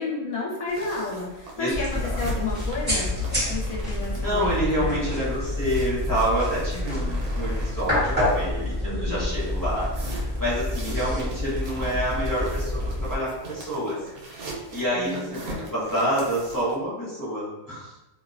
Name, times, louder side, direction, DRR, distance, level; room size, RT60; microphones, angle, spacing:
voice 1, 0.0-5.2 6.7-7.1 8.8-9.3 14.9-15.3, left 3 dB, 75° left, -3 dB, 1.1 m, -32 dB
sound 1, 0.7-8.8 9.3-16.7, right 2 dB, 85° right, 1.1 m, -42 dB
sound 2, 1.7-13.2, left 1 dB, 10° right, 0.9 m, -28 dB
sound 3, 1.9-7.0, left 5 dB, 35° right, 1.1 m, -37 dB
voice 2, 4.1-14.0 14.3-17.9, equal, 20° left, -11 dB, 0.6 m, -28 dB
2.7 x 2.1 x 2.4 m, 1.0 s
omnidirectional pair, 1.5 m